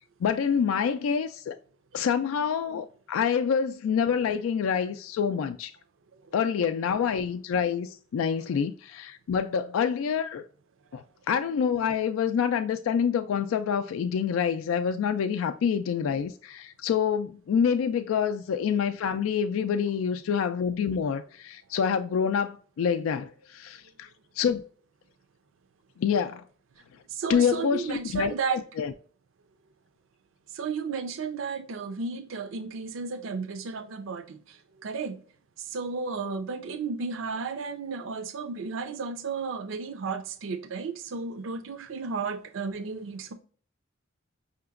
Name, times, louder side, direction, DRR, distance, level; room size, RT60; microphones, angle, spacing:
voice 1, 0.2-1.6 1.9-5.7 6.3-10.4 10.9-24.1 24.4-24.6 26.0-26.4 27.3-28.9, left 7 dB, 90° left, 0.3 m, -27 dB
voice 2, 27.1-28.6 30.5-35.2 35.6-43.3, right 5 dB, 75° right, 0.5 m, -33 dB
5.7 x 2.9 x 2.4 m
head